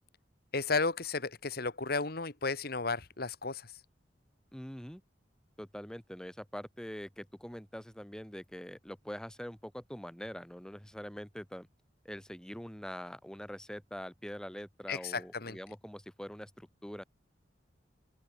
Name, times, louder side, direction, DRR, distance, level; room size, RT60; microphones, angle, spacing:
voice 1, 0.5-3.7 14.9-15.6, left 4 dB, 60° left, 2.0 m, -33 dB
voice 2, 4.5-5.0 5.6-11.7 12.0-17.0, equal, 5° left, 1.2 m, -44 dB
open air
head